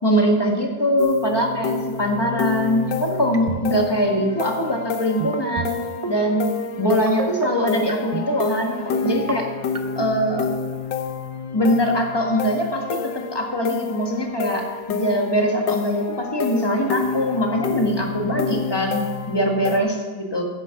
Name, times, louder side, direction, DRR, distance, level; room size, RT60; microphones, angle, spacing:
voice 1, 0.0-5.8 6.1-6.4 6.8-8.7 9.0-9.5 10.0-10.5 11.5-20.4, equal, 15° left, 1 dB, 1.4 m, -22 dB
sound 1, 1.0-19.8, left 5 dB, 75° left, 1.5 m, -29 dB
sound 2, 3.3-3.8 4.2-4.4 5.2-5.7 6.0-6.3 7.1-7.5 7.9-8.3 8.9-9.3 9.7-10.1, right 4 dB, 65° right, 0.3 m, -27 dB
10.0 x 9.9 x 5.8 m, 1.5 s
omnidirectional pair, 2.0 m